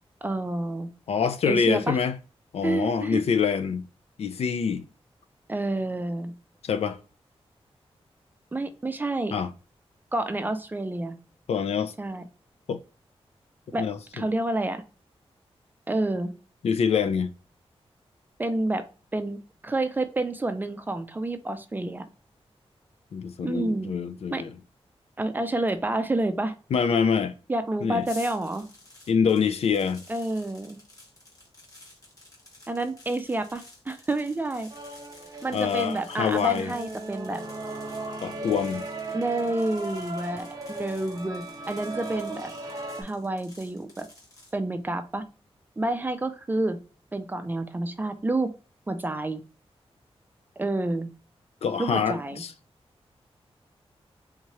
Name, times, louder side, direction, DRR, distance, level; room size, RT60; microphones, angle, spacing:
voice 1, 0.2-0.9 1.5-2.0 2.6-3.2 5.5-6.3 8.5-9.3 10.1-11.2 12.0-12.2 13.7-13.9 14.1-14.8 15.9-16.3 18.4-18.8 19.1-22.1 23.4-23.9 24.3-24.4 25.2-26.6 27.5-28.7 30.1-30.8 32.7-34.7 35.4-37.4 39.1-42.5 43.0-44.1 44.5-45.2 45.8-46.8 47.1-48.5 48.9-49.4 50.6-51.1 51.8-52.4, right 2 dB, 20° right, 0.4 m, -29 dB
voice 2, 1.1-2.2 2.5-3.8 4.2-4.8 6.6-7.0 9.3-9.5 11.5-11.9 12.7-12.8 13.8-14.0 16.6-17.3 23.1-24.5 26.7-27.3 27.8-28.0 29.1-30.0 35.5-36.7 38.2-38.8 51.6-52.5, left 6 dB, 75° left, 0.4 m, -25 dB
sound 1, 28.0-44.5, left 2 dB, 35° left, 1.3 m, -51 dB
sound 2, 34.7-43.0, right 2 dB, 35° right, 0.8 m, -37 dB
3.6 x 3.0 x 2.8 m
wide cardioid pair, 180°, 11 cm